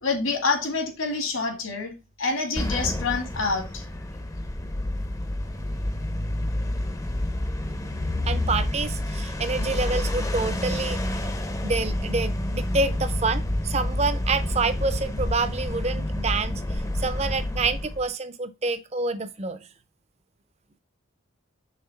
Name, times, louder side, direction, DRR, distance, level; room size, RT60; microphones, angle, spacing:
voice 1, 0.0-1.9 2.2-3.9, left 3 dB, 80° left, 1.9 m, -27 dB
sound 1, 2.6-18.1, left 1 dB, 15° left, 0.5 m, -29 dB
voice 2, 8.2-11.0 11.6-19.6, right 3 dB, 30° right, 0.5 m, -27 dB
5.7 x 3.5 x 5.7 m
head